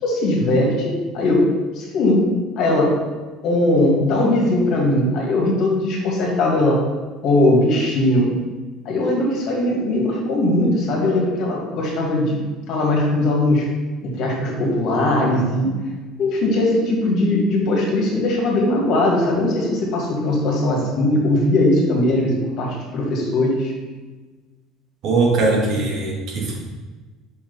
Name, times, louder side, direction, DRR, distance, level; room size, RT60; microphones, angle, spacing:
voice 1, 0.0-2.3 2.6-3.0 3.4-6.8 7.2-8.3 8.9-13.7 14.0-15.7 16.2-23.7, left 1 dB, 55° left, -2 dB, 2.0 m, -19 dB
voice 2, 25.0-26.6, right 3 dB, 50° right, -1 dB, 1.7 m, -20 dB
5.3 x 4.8 x 5.4 m, 1.3 s
cardioid pair, 135°, 0 cm